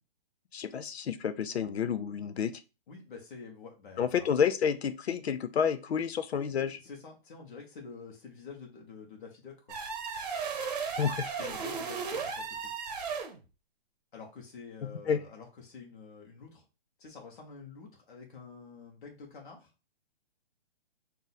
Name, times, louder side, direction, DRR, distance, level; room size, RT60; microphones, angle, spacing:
voice 1, 0.5-2.5 4.0-6.8 11.0-11.3 14.8-15.2, left 7 dB, 85° left, 11 dB, 0.6 m, -30 dB
voice 2, 2.9-4.3 6.8-9.8 11.3-12.5 14.1-16.6 17.0-19.7, left 5 dB, 55° left, 0 dB, 1.4 m, -48 dB
sound 1, 9.7-13.4, right 5 dB, 40° right, 0.9 m, -35 dB
3.8 x 2.7 x 4.0 m, 0.30 s
hypercardioid pair, 160°, 31 cm